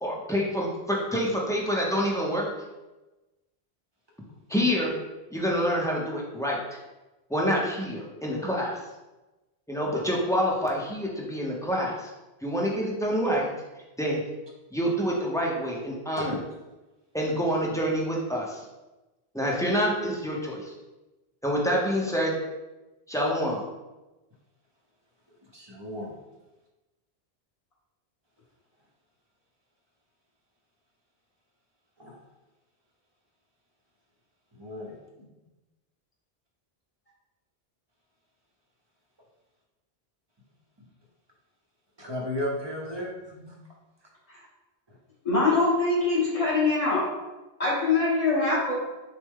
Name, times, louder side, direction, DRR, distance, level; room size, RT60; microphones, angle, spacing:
voice 1, 0.0-2.5 4.5-4.9 5.3-6.6 7.3-8.8 9.7-12.1 12.4-13.5 14.0-14.2 14.7-16.3 17.1-18.6 19.3-20.7 21.4-22.4 23.1-23.6, equal, 5° left, -3 dB, 0.6 m, -27 dB
voice 2, 25.5-26.2 32.0-32.2 34.5-34.9 40.8-40.9 42.0-43.6 44.0-44.1 44.9-45.0, left 1 dB, 25° right, -2 dB, 0.8 m, -35 dB
voice 3, 45.2-47.0 47.6-48.8, left 3 dB, 35° left, -5 dB, 1.4 m, -23 dB
6.4 x 2.2 x 3.6 m, 1.1 s
omnidirectional pair, 1.1 m